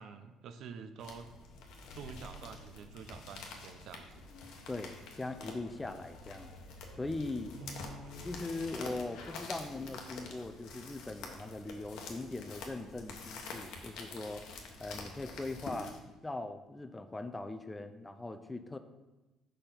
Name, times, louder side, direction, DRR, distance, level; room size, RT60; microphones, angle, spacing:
voice 1, 0.0-1.3 1.9-4.2 7.6-8.2, right 5 dB, 65° right, 9 dB, 0.6 m, -48 dB
sound 1, 1.0-16.0, left 3 dB, 75° left, 1.0 m, -47 dB
voice 2, 4.7-6.5 6.9-7.5 8.2-18.8, left 2 dB, 15° left, 8 dB, 0.5 m, -40 dB
5.1 x 4.3 x 5.7 m, 1.1 s
cardioid pair, 95°, 0 cm